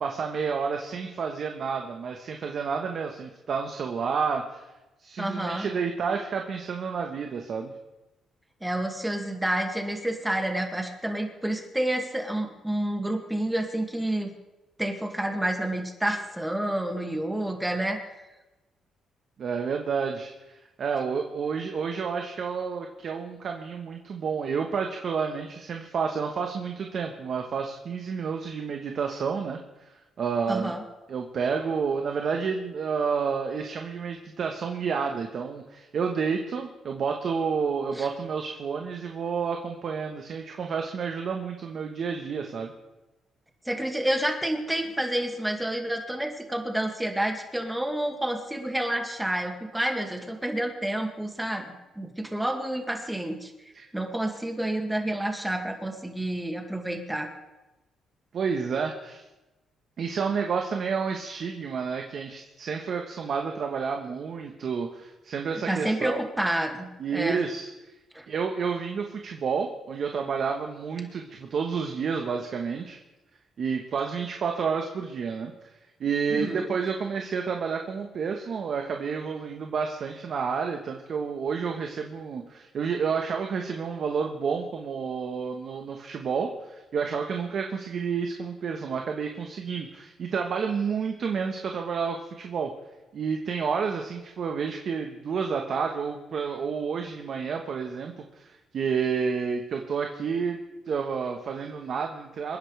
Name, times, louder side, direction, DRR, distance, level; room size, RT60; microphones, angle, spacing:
voice 1, 0.0-4.6 5.0-7.7 19.4-29.6 30.2-30.7 31.1-42.7 53.7-53.9 58.3-59.2 60.0-66.2 67.0-67.7 68.3-73.0 73.6-75.5 76.0-92.7 93.1-100.6 100.9-102.6, right 6 dB, 55° right, 3 dB, 1.3 m, -30 dB
voice 2, 5.2-5.7 8.6-14.3 14.8-18.3 30.5-30.8 37.9-38.1 43.7-53.5 53.9-57.3 65.7-67.4 68.1-68.3 76.3-76.6, right 1 dB, 10° right, 3 dB, 2.3 m, -29 dB
26.0 x 10.5 x 3.4 m, 1.0 s
cardioid pair, 90°, 0 cm